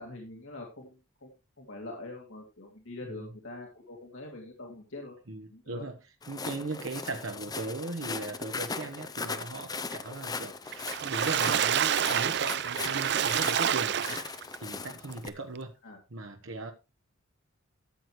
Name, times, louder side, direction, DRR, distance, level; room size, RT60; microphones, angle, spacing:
voice 1, 0.0-1.3 1.6-5.2 5.5-5.9 15.8-16.0, left 2 dB, 75° left, 2.5 m, -44 dB
voice 2, 5.3-6.0 6.3-14.3 14.6-15.7 16.1-16.7, right 2 dB, 75° right, 1.1 m, -38 dB
Walk footsteps, 6.2-15.3, left 4 dB, 20° left, 0.6 m, -39 dB
Water / Splash splatter, 10.7-14.6 15.1-15.2 15.5-15.6, right 9 dB, 55° right, 0.5 m, -28 dB
13.5 x 8.1 x 3.2 m
head